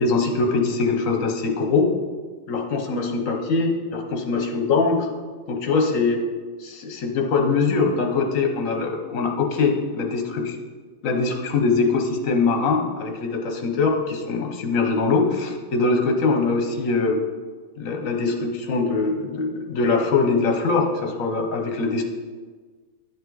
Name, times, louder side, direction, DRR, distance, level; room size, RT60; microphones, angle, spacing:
voice 1, 0.0-1.9 2.5-5.1 5.5-6.3 6.6-10.6 11.0-17.2 17.8-22.0, left 4 dB, 70° left, 3 dB, 1.4 m, -22 dB
10.0 x 5.5 x 4.0 m, 1.5 s
omnidirectional pair, 1.4 m